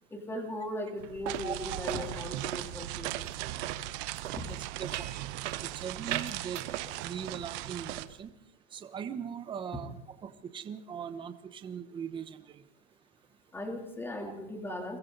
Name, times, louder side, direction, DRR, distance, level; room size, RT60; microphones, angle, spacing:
voice 1, 0.1-3.3 4.4-4.5 13.5-15.0, left 1 dB, 5° left, 3 dB, 3.2 m, -38 dB
sound 1, 1.0-7.5 7.7-8.2, right 11 dB, 85° right, 2.2 m, -40 dB
sound 2, 1.3-8.1, right 16 dB, 35° right, 0.9 m, -39 dB
voice 2, 1.4-2.0 4.4-5.1 5.7-6.6 7.0-8.3 8.7-9.9 10.2-12.4, right 7 dB, 15° right, 9 dB, 1.1 m, -40 dB
29.0 x 23.5 x 4.1 m, 0.83 s
supercardioid pair, 170°, 35 cm